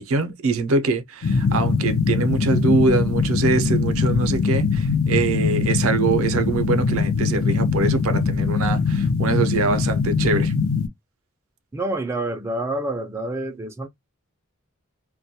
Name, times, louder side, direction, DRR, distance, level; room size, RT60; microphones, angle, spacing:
voice 1, 0.0-10.5, right 3 dB, 70° right, 0.5 m, -23 dB
sound 1, 1.2-10.9, left 4 dB, 65° left, 0.4 m, -22 dB
voice 2, 11.7-13.9, right 2 dB, 10° right, 0.3 m, -27 dB
2.2 x 2.1 x 2.7 m
head